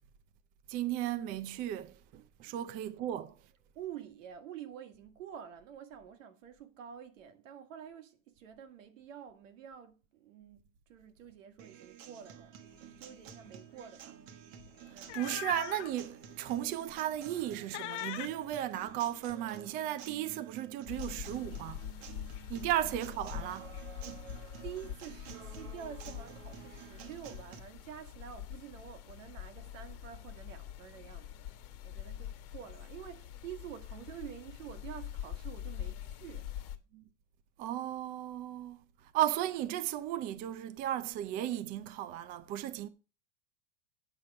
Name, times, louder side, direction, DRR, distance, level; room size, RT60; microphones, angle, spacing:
voice 1, 0.7-3.4 15.1-21.8 22.5-23.7 36.9-37.0 37.6-42.9, right 12 dB, 25° right, 0.4 m, -35 dB
voice 2, 3.7-14.2 14.9-15.4 22.6-22.7 24.0-24.3 24.6-36.5, right 9 dB, 85° right, 1.8 m, -48 dB
Acoustic guitar, 11.6-27.6, right 8 dB, 45° right, 1.1 m, -51 dB
sound 1, 12.8-13.0 13.3-13.5 14.6-16.0 16.5-16.6 17.1-17.5 17.7-19.3, left 17 dB, 70° left, 0.6 m, -42 dB
sound 2, 20.9-36.8, left 11 dB, 50° left, 1.3 m, -45 dB
8.8 x 6.1 x 6.1 m
supercardioid pair, 155°, 37 cm